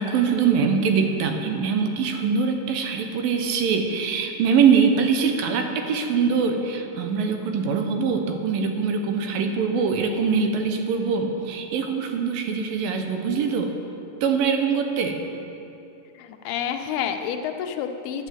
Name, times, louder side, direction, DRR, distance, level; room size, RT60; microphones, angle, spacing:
voice 1, 0.0-13.7 14.2-15.2, right 6 dB, 75° right, 5 dB, 2.5 m, -23 dB
voice 2, 16.2-18.3, left 8 dB, 85° left, 6 dB, 2.7 m, -29 dB
10.0 x 9.2 x 7.6 m, 2.8 s
omnidirectional pair, 4.4 m